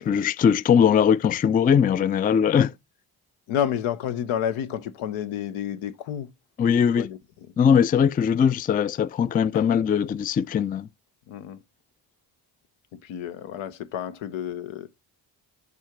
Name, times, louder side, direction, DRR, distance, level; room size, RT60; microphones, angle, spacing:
voice 1, 0.1-2.7 6.6-7.1 7.6-10.9, left 7 dB, 20° left, 0.3 m, -20 dB
voice 2, 3.5-6.3 7.0-7.2 9.5-9.6 11.3-11.6 13.0-14.9, left 9 dB, 80° left, 0.8 m, -30 dB
6.1 x 3.8 x 5.9 m
hypercardioid pair, 45°, 48 cm